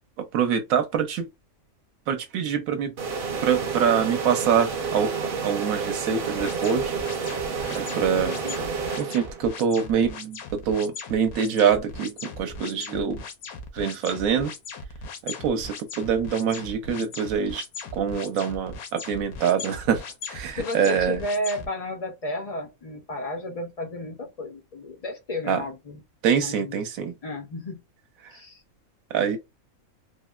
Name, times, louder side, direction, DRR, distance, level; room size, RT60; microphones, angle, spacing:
voice 1, 0.2-1.3 2.1-2.9 3.4-5.1 5.4-6.9 7.7-8.3 9.0-13.2 13.7-14.5 15.2-17.6 17.9-20.0 20.3-21.2 25.5-25.6 26.2-27.1 29.1-29.4, right 7 dB, 75° right, 1.0 m, -25 dB
sound 1, 3.0-9.6, right 5 dB, 50° right, 0.7 m, -30 dB
sound 2, 6.4-21.7, left 4 dB, 80° left, 1.1 m, -38 dB
voice 2, 8.1-8.6 20.6-26.0 26.4-26.8 27.2-27.8 28.3-28.6, left 1 dB, 65° left, 0.3 m, -33 dB
3.3 x 2.0 x 2.3 m
omnidirectional pair, 1.5 m